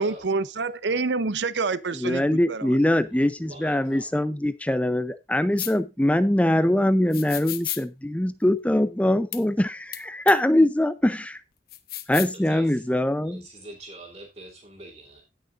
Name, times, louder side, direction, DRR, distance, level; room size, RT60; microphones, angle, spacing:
voice 1, 0.0-2.7, right 4 dB, 85° right, 0.7 m, -27 dB
voice 2, 1.9-11.4 12.1-13.4, left 1 dB, 10° left, 0.5 m, -23 dB
voice 3, 3.0-4.1 12.3-12.8 13.2-15.2, right 2 dB, 35° right, 3.1 m, -44 dB
sound 1, 5.6-5.7 7.1-7.8 9.3-9.4 9.9-10.0 10.3-10.4 11.7-12.4, left 13 dB, 60° left, 0.9 m, -32 dB
17.5 x 6.5 x 2.5 m
head